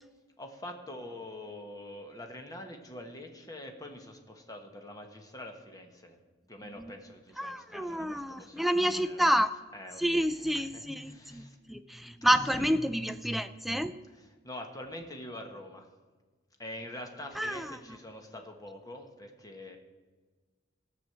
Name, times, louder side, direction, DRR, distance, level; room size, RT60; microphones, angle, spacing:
voice 1, 0.4-6.2 6.5-9.2 9.7-11.6 12.3-12.8 14.1-15.9 16.6-19.8, left 1 dB, 20° left, 3 dB, 1.3 m, -45 dB
voice 2, 7.4-9.5 10.0-13.9 17.4-17.8, equal, ahead, 11 dB, 0.3 m, -29 dB
15.0 x 6.2 x 7.5 m, 1.4 s
head